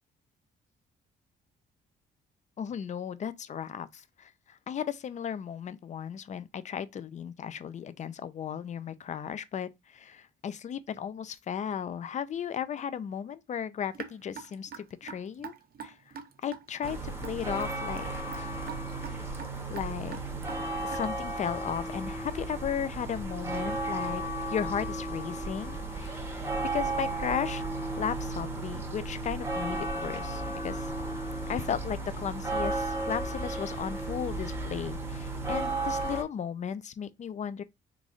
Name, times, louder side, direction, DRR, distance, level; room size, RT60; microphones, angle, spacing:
voice 1, 2.6-16.0 16.4-18.6 19.7-20.2 20.8-24.2 24.5-27.7 28.0-30.9 31.5-37.6, left 8 dB, 35° left, 0.4 m, -35 dB
Raindrop / Drip, 13.9-21.3, right 7 dB, 50° right, 0.7 m, -44 dB
sound 1, 16.8-36.2, right 2 dB, 10° right, 1.1 m, -34 dB
3.7 x 3.0 x 2.5 m
cardioid pair, 90°, 20 cm